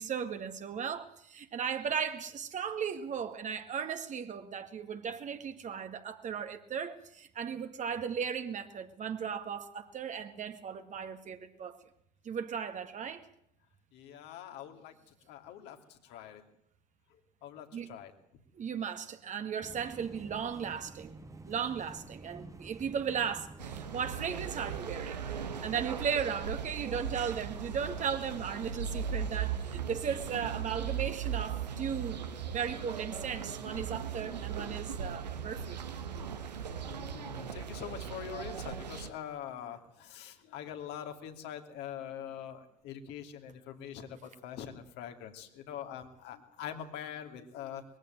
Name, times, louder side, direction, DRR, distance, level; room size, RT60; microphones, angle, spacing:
voice 1, 0.0-11.8 12.2-13.3 17.7-17.9 18.5-21.2 21.4-32.2 32.5-35.8, right 7 dB, 35° right, 2.0 m, -36 dB
voice 2, 13.9-14.9 15.2-16.4 17.4-18.1 36.7-47.8, left 9 dB, 55° left, 2.6 m, -44 dB
sound 1, 19.6-24.8, right 3 dB, 15° right, 1.6 m, -49 dB
sound 2, 23.6-39.1, right 7 dB, 80° right, 1.5 m, -38 dB
21.0 x 15.5 x 9.2 m
figure-of-eight pair, 65°, 21 cm